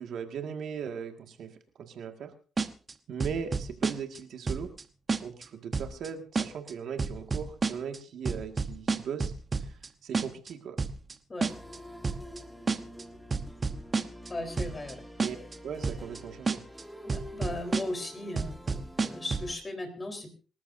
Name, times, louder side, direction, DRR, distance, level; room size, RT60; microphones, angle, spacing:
voice 1, 0.0-1.5 1.8-2.3 3.1-4.7 5.2-9.3 9.6-10.8 15.2-15.4 15.6-16.6, right 7 dB, 65° right, 5 dB, 2.0 m, -38 dB
sound 1, 2.6-2.9 3.2-4.2 4.5-4.8 5.1-5.4 5.7-6.1 6.3-6.7 7.0-8.0 8.2-9.9 10.1-10.5 10.8-11.1 11.4-11.8 12.0-12.4 12.7-13.0 13.3-14.3 14.6-14.9 15.2-15.5 15.8-16.2 16.5-16.8 17.1-18.1 18.4-19.5, right 4 dB, 35° right, 1.1 m, -30 dB
sound 2, 11.5-19.6, equal, ahead, 2.1 m, -47 dB
voice 2, 14.3-15.0 17.0-20.3, left 1 dB, 25° left, 5 dB, 4.0 m, -37 dB
26.0 x 13.0 x 2.7 m, 0.37 s
cardioid pair, 90°, 0 cm